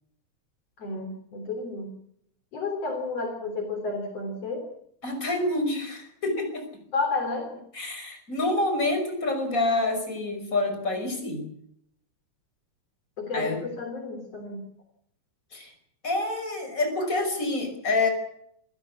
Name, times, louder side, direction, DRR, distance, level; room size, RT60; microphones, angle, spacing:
voice 1, 0.8-1.9 2.5-4.7 6.9-7.6 13.2-14.6, left 3 dB, 55° left, 3 dB, 4.4 m, -31 dB
voice 2, 5.0-6.8 7.7-11.4 13.3-13.6 15.5-15.7 16.0-18.1, left 2 dB, 25° left, 5 dB, 6.1 m, -27 dB
27.0 x 16.5 x 8.5 m, 0.72 s
omnidirectional pair, 3.3 m